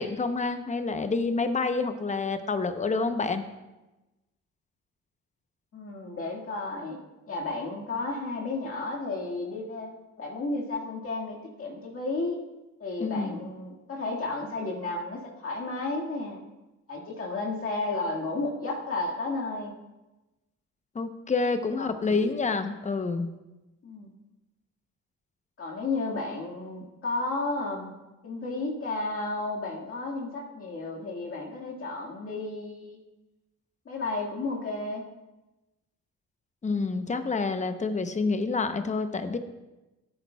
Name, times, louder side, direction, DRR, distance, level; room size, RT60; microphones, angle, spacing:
voice 1, 0.0-3.4 13.0-13.5 20.9-23.3 36.6-39.4, left 4 dB, 25° left, 9 dB, 0.7 m, -28 dB
voice 2, 5.7-7.0 7.3-12.4 12.8-16.4 16.9-19.7 21.8-22.3 23.8-24.1 25.6-27.9 28.2-33.0 33.9-35.0, left 3 dB, 45° left, -3 dB, 1.9 m, -33 dB
15.0 x 8.4 x 2.3 m, 1.0 s
cardioid pair, 90°, 30 cm